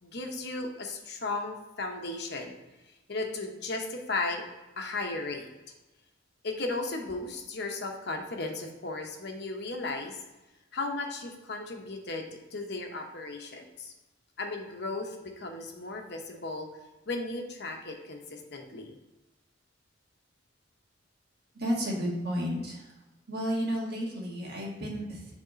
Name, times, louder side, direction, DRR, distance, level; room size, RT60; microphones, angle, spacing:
voice 1, 0.0-2.5 3.1-4.4 4.8-5.5 6.4-10.2 10.7-13.9 14.4-16.7 17.1-19.0, left 2 dB, 60° left, 3 dB, 0.9 m, -35 dB
voice 2, 21.5-22.9 23.3-25.3, equal, 55° right, -3 dB, 1.8 m, -32 dB
6.5 x 3.6 x 5.1 m, 1.1 s
head